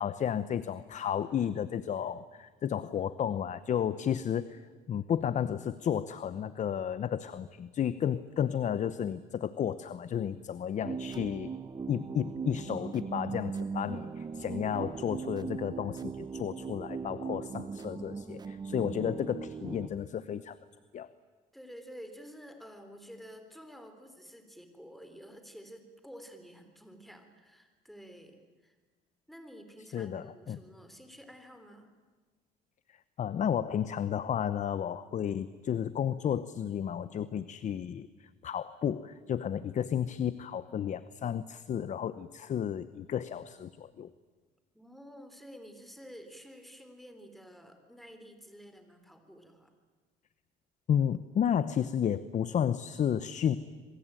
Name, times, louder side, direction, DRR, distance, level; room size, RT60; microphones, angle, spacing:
voice 1, 0.0-11.5 11.9-20.6 20.9-21.1 29.9-30.6 33.2-44.1 50.9-53.6, left 9 dB, 45° left, 15 dB, 0.9 m, -32 dB
sound 1, 10.8-19.9, right 5 dB, 25° right, 0.8 m, -39 dB
voice 2, 21.5-28.8 29.3-31.9 44.7-49.7, equal, ahead, 7 dB, 3.7 m, -50 dB
26.5 x 23.0 x 9.1 m, 1.4 s
cardioid pair, 110°, 17 cm